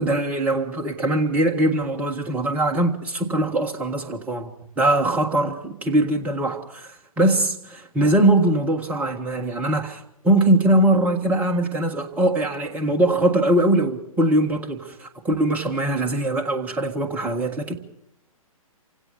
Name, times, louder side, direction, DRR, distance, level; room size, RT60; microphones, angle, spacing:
voice 1, 0.0-4.5 4.8-17.8, right 1 dB, 10° right, 1.6 m, -21 dB
28.0 x 16.5 x 6.8 m
figure-of-eight pair, 130°, 19 cm